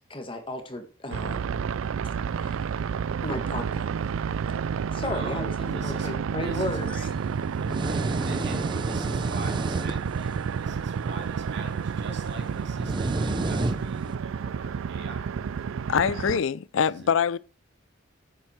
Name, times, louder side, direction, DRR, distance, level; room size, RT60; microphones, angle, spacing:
voice 1, 0.1-1.5 2.3-2.6 3.2-4.1 4.9-6.9, left 1 dB, 25° left, 1.7 m, -34 dB
sound 1, 1.1-16.4, right 6 dB, 80° right, 0.4 m, -30 dB
voice 2, 5.1-5.4 5.7-6.1 6.4-15.4 17.0-17.1, right 3 dB, 60° right, 2.9 m, -43 dB
sound 2, 6.7-14.1, right 2 dB, 25° right, 0.6 m, -32 dB
voice 3, 15.9-17.4, left 7 dB, 75° left, 0.4 m, -24 dB
10.5 x 8.1 x 4.4 m
head